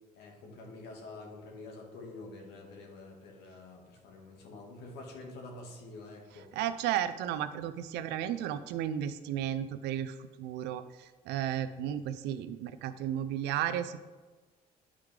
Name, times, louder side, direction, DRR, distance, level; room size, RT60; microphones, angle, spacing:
voice 1, 0.1-6.5, left 2 dB, 85° left, 1 dB, 1.7 m, -47 dB
voice 2, 6.5-14.0, right 10 dB, 90° right, 12 dB, 0.5 m, -34 dB
9.7 x 5.0 x 3.3 m, 1.3 s
cardioid pair, 110°, 17 cm